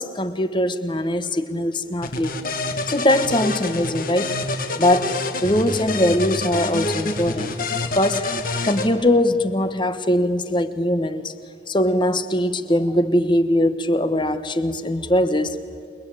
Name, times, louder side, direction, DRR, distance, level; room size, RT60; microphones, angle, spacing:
voice 1, 0.0-2.4 2.9-4.4 4.8-5.2 5.4-7.5 7.9-11.3 11.7-15.6, left 1 dB, 25° left, 1.2 m, -21 dB
sound 1, 2.0-8.9, left 3 dB, 50° left, 1.7 m, -27 dB
28.5 x 22.0 x 9.1 m
head